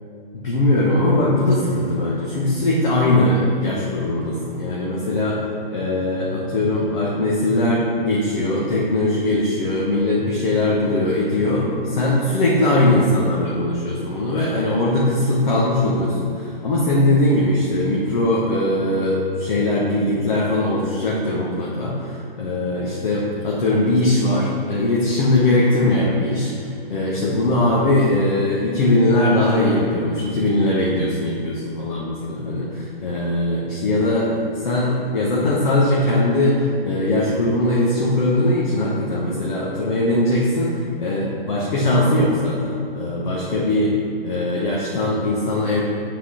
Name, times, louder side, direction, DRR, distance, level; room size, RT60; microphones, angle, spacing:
voice 1, 0.3-5.4 5.7-44.0 44.2-45.8, left 1 dB, 50° left, -5 dB, 1.2 m, -20 dB
8.3 x 4.1 x 4.9 m, 2.4 s
hypercardioid pair, 160°, 30 cm